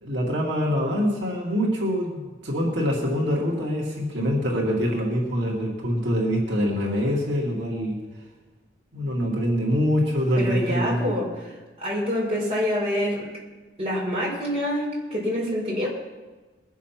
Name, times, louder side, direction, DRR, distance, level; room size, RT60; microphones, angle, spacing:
voice 1, 0.0-8.0 8.9-11.1, equal, 85° right, -3 dB, 2.4 m, -24 dB
voice 2, 10.3-11.5 11.8-13.3 13.8-15.9, equal, 35° right, -5 dB, 4.8 m, -26 dB
21.5 x 7.2 x 5.9 m, 1.3 s
head